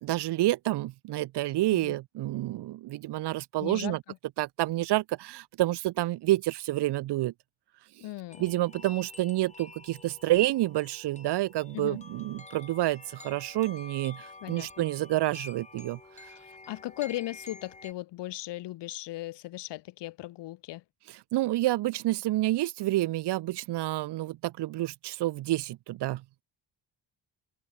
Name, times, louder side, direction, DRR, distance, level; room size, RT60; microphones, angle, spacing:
voice 1, 0.0-4.0 4.4-7.3 8.4-16.0 21.3-26.4, right 16 dB, 70° right, 0.6 m, -29 dB
voice 2, 3.6-4.2 8.0-8.5 11.7-12.0 14.4-14.8 16.4-20.8, left 16 dB, 75° left, 0.6 m, -37 dB
sound 1, 8.3-17.9, left 3 dB, 15° left, 1.3 m, -49 dB
open air
cardioid pair, 90°, 42 cm